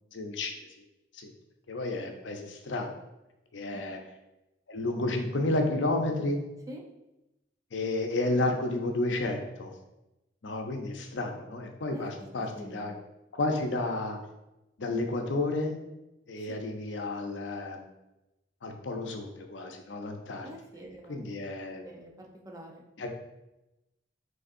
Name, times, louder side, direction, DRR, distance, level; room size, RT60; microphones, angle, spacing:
voice 1, 0.1-0.6 1.1-1.3 1.7-2.9 3.5-4.0 4.7-6.4 7.7-9.7 10.4-12.9 13.3-14.2 14.8-15.8 16.3-17.9 18.6-20.5 21.1-21.8 23.0-23.1, left 2 dB, 80° left, 4 dB, 0.6 m, -31 dB
voice 2, 11.9-13.0 16.5-16.6 20.4-21.2 21.8-22.8, equal, 20° right, 0 dB, 0.6 m, -46 dB
5.1 x 4.0 x 2.6 m, 0.95 s
head